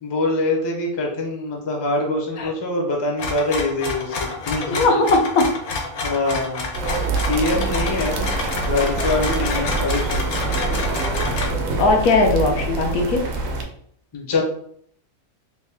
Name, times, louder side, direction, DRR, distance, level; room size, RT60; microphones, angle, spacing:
voice 1, 0.0-4.9 6.0-6.7 7.3-8.3 8.7-10.3 14.1-14.4, left 2 dB, 35° left, 0 dB, 0.4 m, -24 dB
sound 1, 3.2-11.5, left 3 dB, 60° left, 0.9 m, -28 dB
voice 2, 4.6-5.4 11.8-13.2, left 3 dB, 90° left, 3 dB, 1.2 m, -18 dB
sound 2, 6.7-13.6, right 3 dB, 80° right, 1.0 m, -25 dB
3.3 x 2.6 x 3.3 m, 0.64 s
omnidirectional pair, 1.5 m